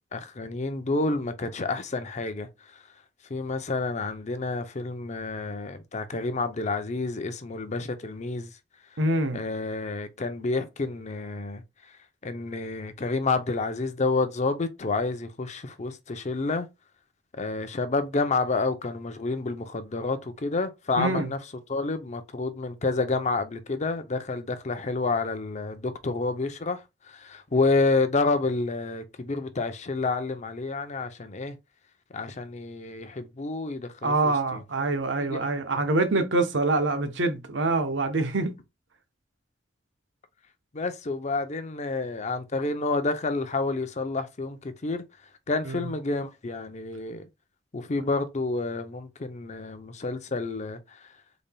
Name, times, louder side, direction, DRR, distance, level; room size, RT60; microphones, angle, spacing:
voice 1, 0.1-2.8 3.3-8.6 9.3-16.7 17.3-21.4 21.7-31.6 32.1-34.6 35.2-35.4 35.7-35.8 40.7-45.0 45.5-47.2 47.7-51.1, left 3 dB, 40° left, 0.6 m, -29 dB
voice 2, 9.0-9.4 21.0-21.3 34.0-38.5 45.7-45.8, right 2 dB, 85° right, 0.9 m, -25 dB
3.9 x 3.5 x 2.2 m
head